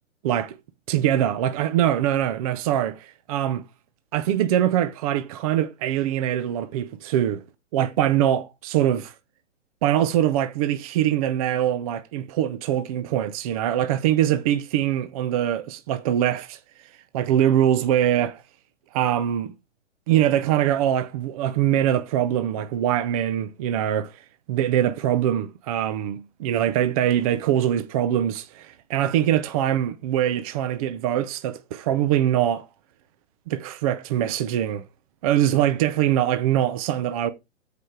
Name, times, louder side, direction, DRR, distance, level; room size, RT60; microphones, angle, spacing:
voice 1, 0.2-0.6 0.9-3.6 4.1-7.4 7.7-9.1 9.8-16.6 17.1-18.4 18.9-19.5 20.1-24.2 24.5-32.7 33.5-34.8 35.2-37.3, right 11 dB, 30° right, 0.6 m, -23 dB
14.0 x 5.0 x 4.7 m
figure-of-eight pair, 120°, 37 cm